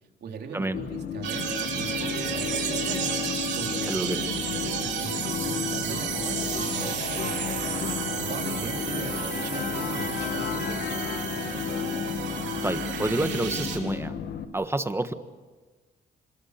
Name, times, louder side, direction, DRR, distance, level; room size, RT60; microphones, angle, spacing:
voice 1, 0.2-3.1 3.3-7.6 8.1-11.3, right 6 dB, 65° right, 2 dB, 3.7 m, -39 dB
sound 1, 0.7-14.4, left 7 dB, 65° left, 1.8 m, -32 dB
sound 2, 1.2-13.8, right 8 dB, 85° right, 3.7 m, -32 dB
voice 2, 3.9-4.2 12.6-14.1 14.5-15.1, right 2 dB, 15° right, 10 dB, 1.5 m, -28 dB
26.5 x 21.5 x 6.8 m, 1.3 s
cardioid pair, 85°, 18 cm